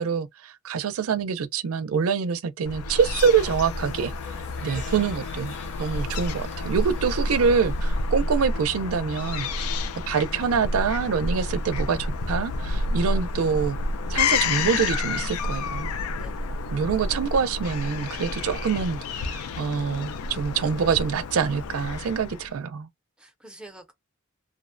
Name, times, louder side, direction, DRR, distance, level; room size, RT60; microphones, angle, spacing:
voice 1, 0.0-4.1 4.6-9.7 10.1-13.8 14.1-15.9 16.7-22.9, right 6 dB, 80° right, 0.4 m, -25 dB
Fowl / Gull seagull, 2.6-22.5, left 3 dB, 90° left, 0.4 m, -29 dB
sound 1, 3.0-8.2, left 3 dB, 55° left, 0.9 m, -44 dB
voice 2, 16.2-16.5 17.3-17.4 23.2-23.9, right 2 dB, 5° right, 0.5 m, -48 dB
2.5 x 2.1 x 2.4 m
head